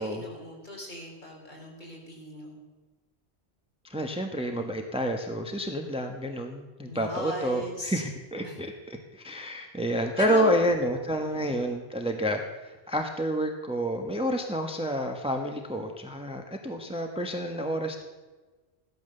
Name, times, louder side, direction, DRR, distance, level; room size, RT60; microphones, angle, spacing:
voice 1, 0.0-2.6 4.5-4.7 6.8-8.0 8.4-8.6 10.2-10.4 11.3-11.4, left 1 dB, 45° left, -2 dB, 5.4 m, -38 dB
voice 2, 3.8-18.0, equal, 5° right, 4 dB, 1.3 m, -29 dB
16.0 x 12.5 x 6.8 m, 1.3 s
omnidirectional pair, 1.1 m